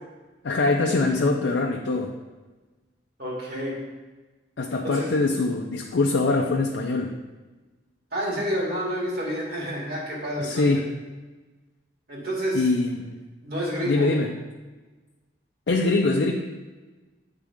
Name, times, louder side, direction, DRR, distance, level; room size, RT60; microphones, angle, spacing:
voice 1, 0.4-2.1 4.6-7.1 10.4-10.9 12.5-13.2 13.8-14.3 15.7-16.3, left 3 dB, 80° left, 1 dB, 0.5 m, -23 dB
voice 2, 3.2-3.8 4.8-5.1 8.1-10.8 12.1-12.7 13.4-14.1, equal, 60° right, -3 dB, 2.0 m, -29 dB
8.8 x 3.7 x 3.6 m, 1.2 s
head